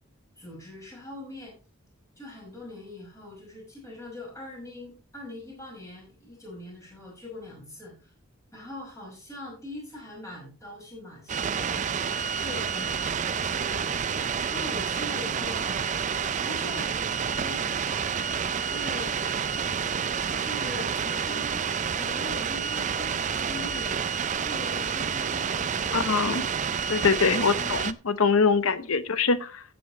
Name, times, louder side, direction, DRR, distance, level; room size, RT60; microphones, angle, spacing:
voice 1, 0.4-1.5 2.2-8.1 8.5-11.9 12.4-15.8 16.4-16.9 17.3-19.1 20.2-21.6 22.0-24.1 24.3-26.0 26.7-26.8 27.1-27.8 28.7-28.9, left 2 dB, 15° left, -2 dB, 5.6 m, -42 dB
sound 1, 11.3-27.9, right 7 dB, 35° right, 0.4 m, -29 dB
voice 2, 25.9-26.5 26.9-29.6, left 5 dB, 75° left, 13 dB, 0.9 m, -23 dB
15.5 x 7.1 x 3.1 m, 0.35 s
head